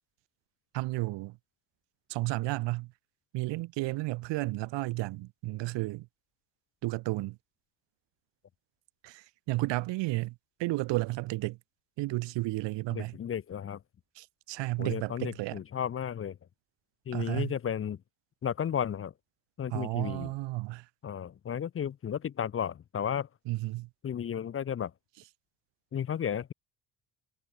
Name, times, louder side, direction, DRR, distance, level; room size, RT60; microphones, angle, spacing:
voice 1, 0.7-1.4 2.1-2.9 3.3-6.1 6.8-7.4 9.0-10.3 10.6-11.6 12.0-13.2 14.1-15.6 17.1-17.5 19.7-20.8 23.5-23.9, right 20 dB, 85° right, 1.6 m, -32 dB
voice 2, 12.9-13.8 14.8-16.4 17.1-18.0 18.4-19.1 19.6-20.3 21.0-23.3 24.0-24.9 25.9-26.5, left 8 dB, 30° left, 0.7 m, -33 dB
cardioid pair, 115°, 42 cm